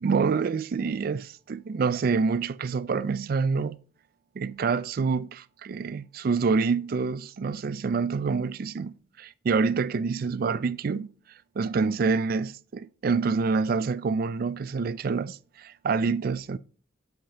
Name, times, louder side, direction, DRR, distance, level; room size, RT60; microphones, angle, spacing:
voice 1, 0.0-3.8 4.4-11.1 11.6-16.6, right 5 dB, 50° right, 0.3 m, -27 dB
7.9 x 5.2 x 2.7 m
head